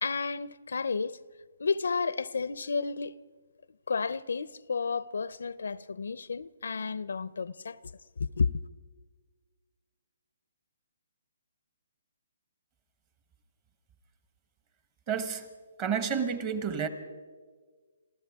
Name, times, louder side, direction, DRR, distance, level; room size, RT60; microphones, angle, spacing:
voice 1, 0.0-1.2 1.6-3.2 3.9-7.8 8.2-8.6, left 5 dB, 80° left, 0.5 m, -31 dB
voice 2, 15.1-15.5 15.8-16.9, right 7 dB, 25° right, 1.1 m, -30 dB
26.5 x 14.5 x 3.6 m
hypercardioid pair, 160°, 0 cm